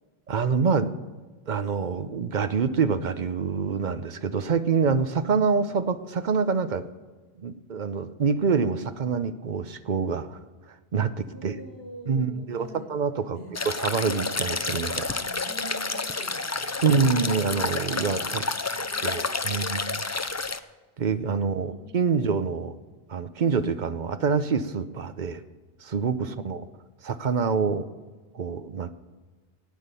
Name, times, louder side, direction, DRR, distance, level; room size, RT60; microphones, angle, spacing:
voice 1, 0.3-0.9 1.5-6.8 7.4-10.4 10.9-11.5 12.1-13.4 13.7-15.1 16.8-18.4 19.0-20.0 21.0-22.7 23.1-25.4 25.8-26.6 27.0-27.9 28.3-28.9, right 5 dB, 50° right, 11 dB, 0.9 m, -26 dB
voice 2, 11.3-12.9 13.3-13.5 15.1-16.9 18.1-19.7 21.4-22.2 26.2-26.4, right 1 dB, 85° left, -1 dB, 4.6 m, -45 dB
sound 1, 13.5-20.6, left 3 dB, 25° left, 0.3 m, -30 dB
16.5 x 9.4 x 6.9 m, 1.3 s
omnidirectional pair, 1.0 m